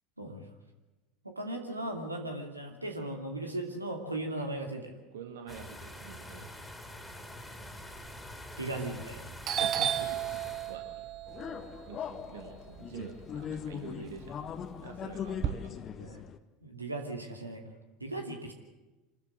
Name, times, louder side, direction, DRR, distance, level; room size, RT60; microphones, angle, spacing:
voice 1, 0.2-0.5 1.2-5.0 8.6-9.3 16.0-16.2 16.6-17.7 18.0-18.5, right 2 dB, 90° right, 3 dB, 2.6 m, -37 dB
voice 2, 5.1-6.5 9.6-10.8 11.9-14.3 14.8-15.8, right 7 dB, 70° right, 5 dB, 1.8 m, -46 dB
sound 1, 5.5-10.8, left 1 dB, 10° left, 3.1 m, -46 dB
Doorbell, 8.9-9.2 9.4-13.6 14.0-15.5, right 10 dB, 40° right, 1.0 m, -34 dB
sound 2, 11.3-16.4, left 8 dB, 35° left, 1.3 m, -40 dB
26.0 x 14.0 x 7.9 m, 1.1 s
figure-of-eight pair, 75°, 0 cm